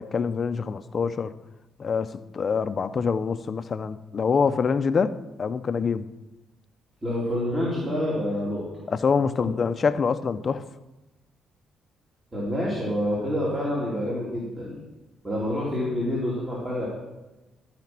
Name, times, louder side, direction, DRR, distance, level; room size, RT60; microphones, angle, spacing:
voice 1, 0.0-1.3 1.8-6.0 8.9-10.6, left 5 dB, 40° left, 0.6 m, -25 dB
voice 2, 7.0-8.6 12.3-14.8 15.2-16.9, left 1 dB, 20° right, 3.0 m, -27 dB
14.0 x 5.1 x 6.0 m
cardioid pair, 110°, 0 cm